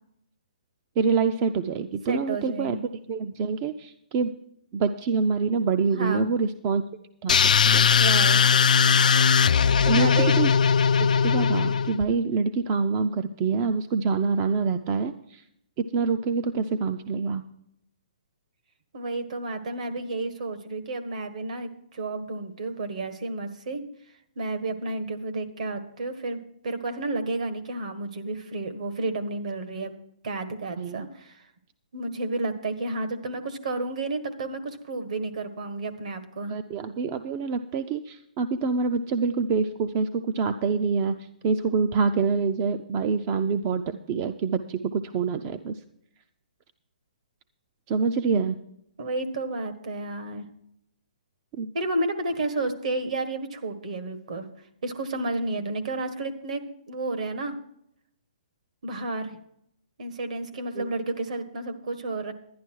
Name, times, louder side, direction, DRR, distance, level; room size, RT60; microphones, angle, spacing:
voice 1, 1.0-2.8 3.1-4.4 4.7-6.8 7.2-7.4 7.6-7.9 9.9-10.5 11.0-15.4 15.9-17.4 30.8-31.1 36.5-45.8 47.9-48.6 51.6-51.7 60.8-60.9, right 5 dB, 20° right, 10 dB, 0.4 m, -26 dB
voice 2, 2.1-2.8 5.9-6.3 7.9-8.4 9.8-10.4 12.1-12.2 18.9-23.8 24.4-29.9 30.2-31.5 31.9-36.5 49.0-50.5 51.7-54.5 54.8-57.6 58.8-59.4 60.0-62.3, right 2 dB, 55° right, 9 dB, 1.5 m, -31 dB
sound 1, 7.3-12.0, left 6 dB, 70° left, 0.3 m, -19 dB
11.0 x 11.0 x 4.5 m, 0.75 s
hypercardioid pair, 170°, 4 cm